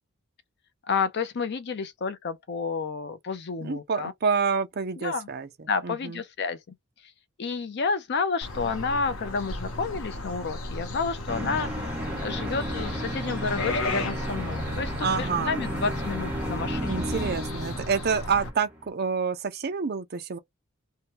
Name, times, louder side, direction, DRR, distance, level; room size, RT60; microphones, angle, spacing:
voice 1, 0.9-4.1 5.0-5.3 5.7-6.6 7.4-17.0, left 5 dB, 55° left, 0.5 m, -30 dB
voice 2, 3.6-6.2 15.0-15.6 16.9-20.4, right 5 dB, 50° right, 0.6 m, -28 dB
sound 1, 8.4-18.5, left 2 dB, 80° left, 0.8 m, -35 dB
sound 2, 11.3-18.9, equal, 5° right, 0.8 m, -33 dB
2.7 x 2.2 x 2.9 m
head